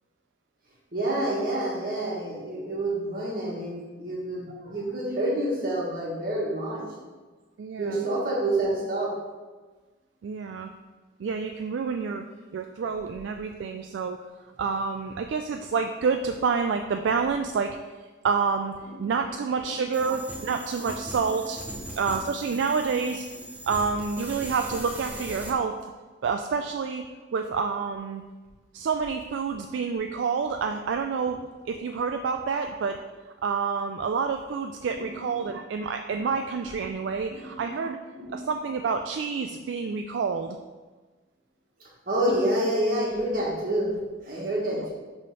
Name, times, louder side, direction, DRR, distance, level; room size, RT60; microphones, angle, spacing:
voice 1, 0.9-6.8 7.8-9.1 18.9-19.0 20.0-20.1 20.3-20.4 20.8-20.9 21.2-21.3 22.5-22.9 35.0-35.5 36.2-36.3 37.3-37.7 38.2-38.3 41.8-43.9 44.2-44.9, right 1 dB, 45° right, -4 dB, 1.5 m, -28 dB
voice 2, 7.6-8.1 10.2-10.7 11.2-12.2 12.5-14.2 14.6-17.8 18.2-18.7 19.0-21.6 22.0-23.3 23.7-25.8 26.2-27.0 27.3-28.2 28.7-33.0 33.4-38.0 38.3-40.6 44.8-44.9, right 5 dB, 70° right, 5 dB, 0.3 m, -28 dB
sound 1, 19.9-25.5, right 1 dB, 10° right, 0.6 m, -39 dB
5.4 x 3.5 x 5.3 m, 1.3 s
head